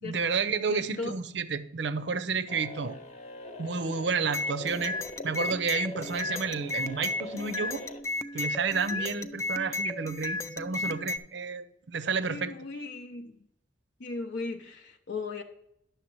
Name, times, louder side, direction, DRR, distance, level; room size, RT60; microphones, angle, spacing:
voice 1, 0.0-3.0 3.6-5.0 5.2-7.8 8.3-12.5, right 5 dB, 70° right, 12 dB, 0.6 m, -31 dB
voice 2, 0.7-1.1 2.8-2.9 8.9-9.1 12.3-13.3 14.0-15.4, left 3 dB, 65° left, 4 dB, 0.5 m, -37 dB
sound 1, 2.5-8.0, left 2 dB, 40° left, 0.9 m, -43 dB
sound 2, 4.3-11.2, left 2 dB, 15° left, 0.3 m, -34 dB
10.5 x 6.8 x 3.1 m, 0.79 s
head